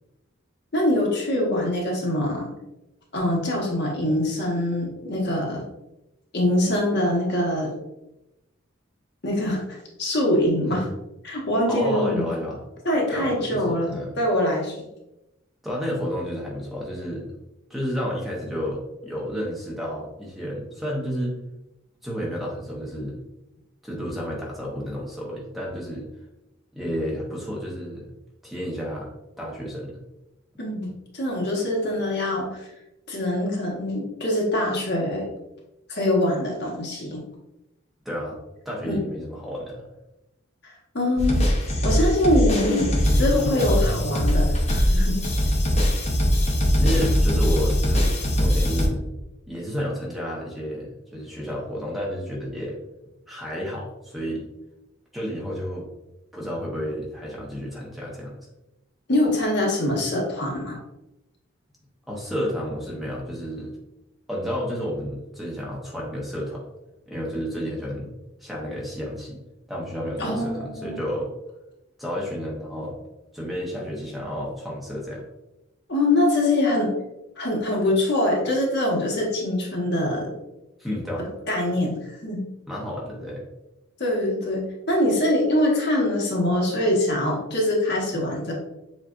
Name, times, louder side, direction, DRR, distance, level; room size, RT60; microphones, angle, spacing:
voice 1, 0.7-2.5 3.1-5.6 6.3-7.7 9.2-10.8 11.2-12.3 12.8-14.8 30.6-32.6 33.1-35.3 35.9-37.2 38.8-39.0 40.6-41.4 41.8-45.2 59.1-60.8 70.2-71.0 75.9-76.9 77.4-80.3 81.5-82.4 84.0-84.6 84.9-88.5, left 1 dB, 55° left, -2 dB, 1.1 m, -24 dB
voice 2, 11.7-12.6 13.1-14.1 15.6-17.3 17.7-21.3 22.0-23.2 23.8-26.1 26.7-28.1 28.4-29.1 29.4-30.0 38.0-38.4 38.6-39.8 46.8-49.0 49.5-52.8 53.3-54.5 55.1-55.9 56.3-58.3 62.1-63.7 64.3-66.6 67.1-68.1 68.4-69.4 69.7-71.3 72.0-72.9 73.3-75.2 80.8-81.3 82.7-83.5, equal, ahead, -4 dB, 0.8 m, -31 dB
sound 1, 41.2-48.9, equal, 30° left, 0.8 m, -21 dB
7.2 x 2.5 x 2.4 m, 0.93 s
head